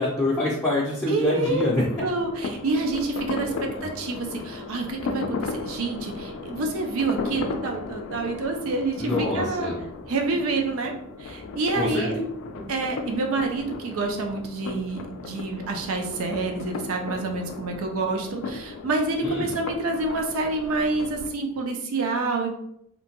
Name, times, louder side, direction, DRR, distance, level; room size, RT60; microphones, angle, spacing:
voice 1, 0.0-2.0 3.4-3.9 9.0-9.8 11.8-12.2 12.6-12.7 19.2-19.5, left 1 dB, 10° left, -6 dB, 0.5 m, -26 dB
voice 2, 1.1-1.7 2.0-9.7 10.1-10.9 11.2-12.1 12.7-22.5, right 3 dB, 80° right, 3 dB, 0.5 m, -28 dB
sound 1, 1.4-21.3, left 3 dB, 70° left, 0.3 m, -35 dB
2.8 x 2.1 x 2.8 m, 0.74 s
head